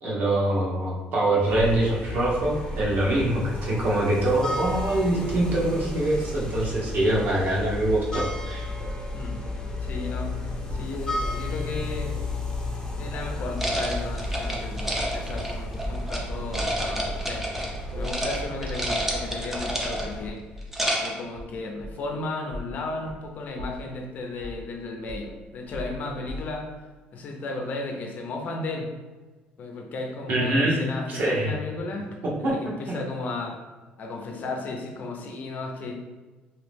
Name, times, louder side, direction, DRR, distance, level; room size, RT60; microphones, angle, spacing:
voice 1, 0.0-8.7 30.3-30.8 31.1-31.5 32.2-32.5, right 1 dB, 60° right, -4 dB, 1.1 m, -24 dB
sound 1, 1.4-20.3, left 1 dB, 20° left, 0.8 m, -33 dB
sound 2, 8.8-11.6 12.1-12.4 13.1-13.5 13.9-14.5 15.0-15.2 15.8-16.1 16.5-17.3 17.9-18.3 18.6-18.8 19.1-19.3 20.1-20.7 21.3-22.1 22.5-22.8 23.1-23.3 23.6-24.0 24.4-24.7 25.1-26.7, left 1 dB, 90° right, 1.3 m, -39 dB
voice 2, 9.8-12.3 13.0-17.5 17.9-20.4 21.0-26.7 27.1-28.9 29.6-32.1 32.4-33.6 34.0-35.9, left 2 dB, 50° left, 2 dB, 0.6 m, -34 dB
sound 3, 13.6-16.2 16.5-17.8 18.0-18.4 18.6-20.2 20.6-21.2, equal, 10° right, 0.6 m, -29 dB
3.1 x 2.8 x 3.4 m, 1.3 s
cardioid pair, 120°, 4 cm